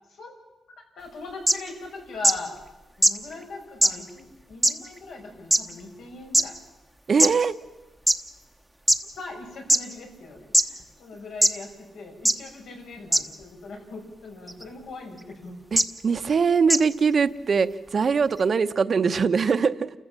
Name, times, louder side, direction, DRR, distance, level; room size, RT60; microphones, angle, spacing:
voice 1, 1.0-2.5 3.0-6.5 9.2-15.6, left 3 dB, 80° left, 1 dB, 5.9 m, -40 dB
sound 1, 1.5-1.6 2.2-2.3 3.0-3.1 3.8-3.9 4.6-4.7 5.5-5.6 6.3-6.4 7.2-7.3 8.1-8.2 8.9-9.0 9.7-9.8 10.5-10.6 11.4-11.5 12.2-12.3 13.1-13.2 14.5-14.6 15.8-15.9 16.7-16.8, right 1 dB, ahead, 1.0 m, -18 dB
voice 2, 7.1-7.6 15.7-19.9, right 5 dB, 40° right, 11 dB, 0.9 m, -22 dB
29.0 x 15.0 x 7.5 m, 1.1 s
cardioid pair, 130°, 0 cm